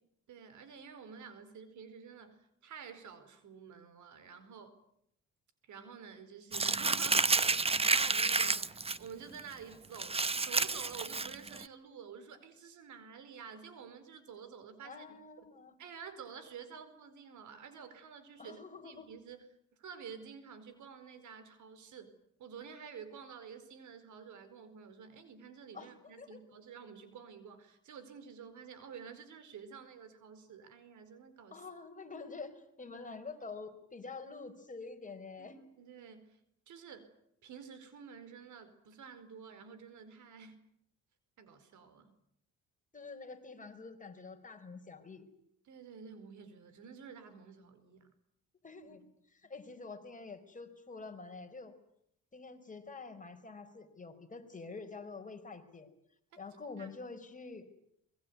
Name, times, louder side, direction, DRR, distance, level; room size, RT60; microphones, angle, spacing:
voice 1, 0.3-4.8 5.6-10.2 10.4-15.2 15.8-19.5 19.8-22.1 22.4-31.6 35.4-36.4 36.7-37.1 37.4-40.6 41.4-42.1 45.7-48.1 48.8-49.0 56.8-56.9, right 6 dB, 75° right, 12 dB, 4.7 m, -50 dB
Crumpling crinkling, 6.5-9.0 9.4-9.5 9.9-11.6, right 3 dB, 20° right, 1.0 m, -30 dB
voice 2, 14.8-15.7 18.4-19.1 25.7-26.4 31.5-35.6 42.9-45.3 48.6-49.0 49.3-51.7 52.3-55.9 56.4-57.7, left 4 dB, 25° left, 6 dB, 4.6 m, -47 dB
24.5 x 21.5 x 9.6 m, 0.74 s
cardioid pair, 90°, 30 cm